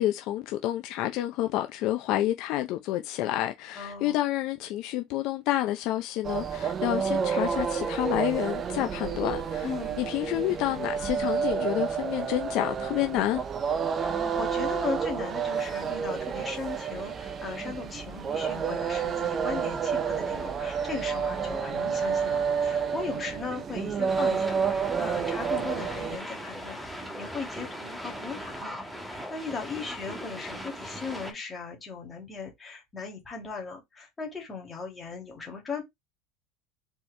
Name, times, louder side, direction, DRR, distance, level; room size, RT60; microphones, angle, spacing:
voice 1, 0.0-9.7 10.0-13.4, left 14 dB, 55° left, 0.5 m, -29 dB
voice 2, 3.8-4.2 9.6-10.0 14.0-28.8 29.1-35.8, left 4 dB, 15° left, 2.0 m, -38 dB
sound 1, 6.2-26.2, right 6 dB, 25° right, 0.5 m, -30 dB
sound 2, 24.1-31.3, equal, 5° right, 1.3 m, -39 dB
4.4 x 2.9 x 3.2 m
supercardioid pair, 140°, 0 cm